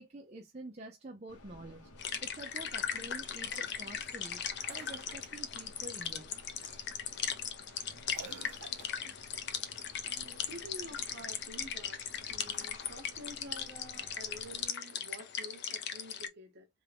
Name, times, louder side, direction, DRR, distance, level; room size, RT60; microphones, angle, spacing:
voice 1, 0.0-1.9 2.2-4.4 4.7-6.3, right 2 dB, 30° right, 0.6 m, -48 dB
sound 1, 1.3-14.7, left 1 dB, 85° left, 1.1 m, -56 dB
sound 2, 2.0-16.3, left 8 dB, 50° left, 0.5 m, -38 dB
Cough, 3.5-3.9 4.7-5.4 6.6-6.9 8.1-9.2 12.3-13.1 14.5-14.6, right 6 dB, 90° right, 0.5 m, -53 dB
voice 2, 10.0-12.0 12.3-16.7, equal, 45° right, 1.0 m, -49 dB
3.5 x 2.3 x 3.4 m
head